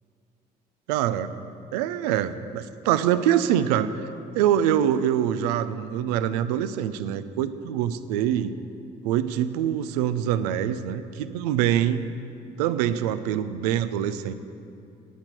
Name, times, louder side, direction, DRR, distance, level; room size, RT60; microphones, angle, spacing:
voice 1, 0.9-1.3 1.7-4.0 4.3-8.6 9.0-12.1 12.6-14.3, right 10 dB, 90° right, 13 dB, 0.5 m, -24 dB
10.5 x 9.0 x 7.5 m, 2.6 s
hypercardioid pair, 55°, 20 cm